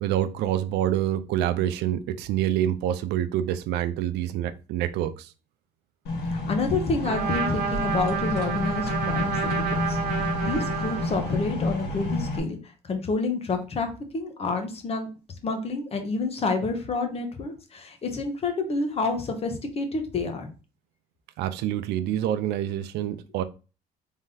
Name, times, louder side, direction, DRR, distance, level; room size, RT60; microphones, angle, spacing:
voice 1, 0.0-5.3 21.4-23.4, right 11 dB, 85° right, 0.5 m, -27 dB
sound 1, 6.1-12.4, left 2 dB, 75° left, 1.6 m, -30 dB
voice 2, 6.3-12.6 12.8-15.1 15.4-20.5, left 3 dB, 35° left, 1.0 m, -29 dB
Trumpet, 7.0-11.6, right 6 dB, 65° right, 1.0 m, -30 dB
3.7 x 3.6 x 2.7 m
cardioid pair, 110°, 17 cm